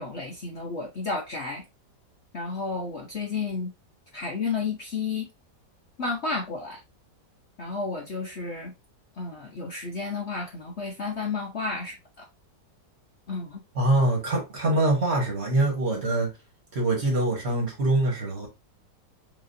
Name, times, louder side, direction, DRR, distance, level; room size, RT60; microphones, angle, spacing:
voice 1, 0.0-1.6 2.3-3.7 4.1-5.3 6.0-6.8 7.6-8.7 9.2-12.2 13.3-13.6, left 4 dB, 50° left, 0.9 m, -32 dB
voice 2, 13.7-16.3 16.7-18.5, right 2 dB, 40° right, 1.5 m, -24 dB
5.7 x 3.0 x 2.6 m
omnidirectional pair, 1.9 m